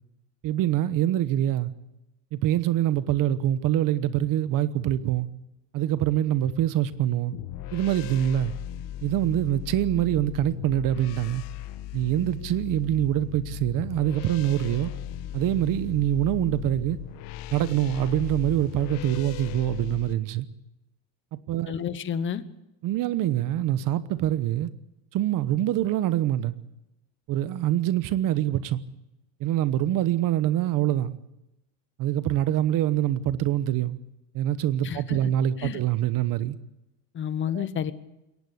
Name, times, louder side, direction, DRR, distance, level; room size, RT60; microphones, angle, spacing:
voice 1, 0.4-1.7 2.3-5.3 5.7-7.3 7.7-8.5 9.0-11.4 11.9-14.9 15.3-17.0 17.5-20.5 21.5-21.7 22.8-24.7 25.1-26.6 27.3-28.8 29.4-31.2 32.0-34.0 34.3-36.6 37.5-37.7, right 12 dB, 45° right, 1.1 m, -25 dB
sound 1, 7.3-20.1, left 12 dB, 65° left, 1.3 m, -37 dB
voice 2, 21.7-22.4 34.8-35.2 35.6-35.8 37.1-37.9, left 8 dB, 25° left, 1.1 m, -30 dB
22.5 x 18.0 x 8.1 m
cardioid pair, 145°, 46 cm